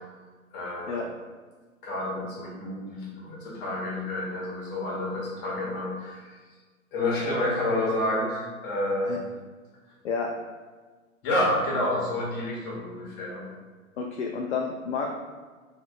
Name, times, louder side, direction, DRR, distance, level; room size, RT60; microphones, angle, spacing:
voice 1, 0.5-1.0 1.8-6.3 6.9-9.1 11.2-13.4, left 1 dB, 25° left, -4 dB, 1.2 m, -29 dB
voice 2, 14.0-15.1, left 5 dB, 55° left, 1 dB, 0.5 m, -30 dB
3.5 x 2.7 x 3.6 m, 1.4 s
figure-of-eight pair, 115°, 43 cm